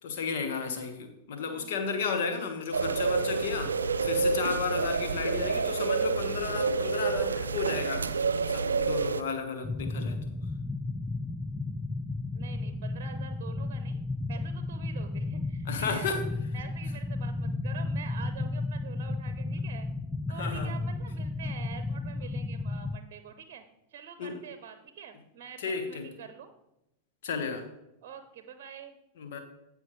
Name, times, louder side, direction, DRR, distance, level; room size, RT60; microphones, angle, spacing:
voice 1, 0.0-3.7 4.0-8.1 8.5-10.3 15.7-16.2 20.3-20.8 24.2-24.4 25.6-26.1 27.2-27.7 29.2-29.4, left 5 dB, 55° left, 6 dB, 1.5 m, -33 dB
voice 2, 1.4-1.8 5.4-5.8 12.3-14.0 14.3-16.2 16.5-19.9 20.3-23.6 23.9-26.5 28.0-29.0, right 7 dB, 45° right, 9 dB, 0.8 m, -46 dB
sound 1, 2.7-9.2, right 4 dB, 75° right, 0.5 m, -28 dB
sound 2, 9.6-23.0, left 2 dB, ahead, 0.4 m, -33 dB
16.0 x 5.7 x 3.2 m, 0.87 s
figure-of-eight pair, 90°, 0 cm